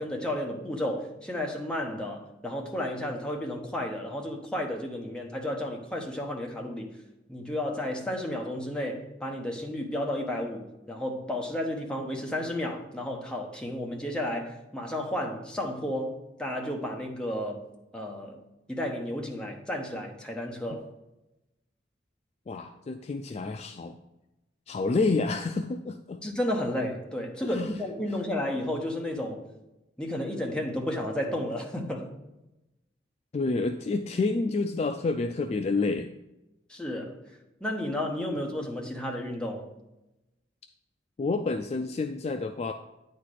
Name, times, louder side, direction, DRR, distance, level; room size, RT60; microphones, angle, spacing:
voice 1, 0.0-6.9 7.3-17.6 17.9-18.4 18.7-20.9 26.2-29.5 30.0-32.1 36.7-37.2 37.6-39.7, left 1 dB, 5° left, 1.0 m, -32 dB
voice 2, 22.5-23.9 24.7-26.2 27.4-27.7 33.3-36.1 41.2-42.7, left 3 dB, 35° left, 0.3 m, -29 dB
9.1 x 4.3 x 4.8 m
head